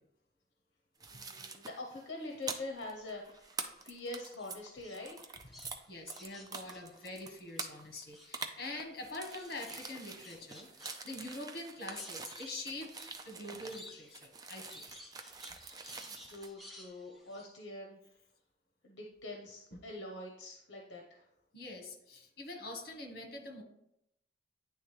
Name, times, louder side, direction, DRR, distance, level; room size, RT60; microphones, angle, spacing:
sound 1, 1.0-5.8 6.1-16.5, right 4 dB, 20° right, 0.4 m, -46 dB
voice 1, 1.1-3.5 3.8-5.2 16.0-18.0 18.8-21.2, left 2 dB, 70° left, 0 dB, 0.7 m, -44 dB
sound 2, 2.5-3.9 4.4-7.6 7.9-17.5, left 1 dB, ahead, 0.9 m, -56 dB
voice 2, 5.6-12.9 13.2-14.8 19.7-19.8 21.5-23.6, left 2 dB, 55° left, 2 dB, 1.3 m, -45 dB
9.5 x 3.4 x 3.2 m, 0.79 s
head